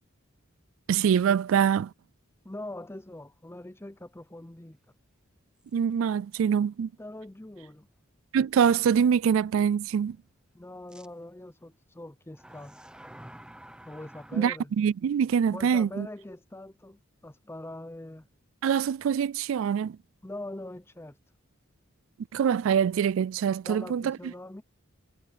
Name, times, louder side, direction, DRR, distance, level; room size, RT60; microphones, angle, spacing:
voice 1, 0.9-1.9 5.7-6.9 8.3-10.2 14.3-16.1 18.6-20.0 22.3-24.2, right 7 dB, 65° right, 0.3 m, -24 dB
voice 2, 2.4-4.8 7.0-7.9 10.5-12.7 13.9-14.7 15.5-18.3 20.2-21.2 23.6-24.6, left 1 dB, 10° left, 0.7 m, -42 dB
sound 1, 5.6-5.7 6.4-6.5 10.9-11.1 12.3-14.6, right 1 dB, 5° right, 1.0 m, -49 dB
head